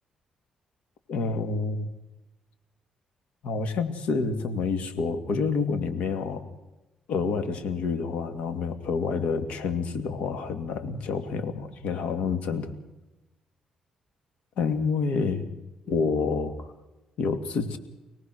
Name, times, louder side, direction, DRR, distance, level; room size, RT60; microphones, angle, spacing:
voice 1, 1.1-1.9 3.4-6.4 7.1-12.7 14.6-15.4 15.9-16.7 17.2-17.8, left 4 dB, 80° left, 8 dB, 2.4 m, -28 dB
26.0 x 18.5 x 6.4 m, 1.0 s
cardioid pair, 85°, 2 cm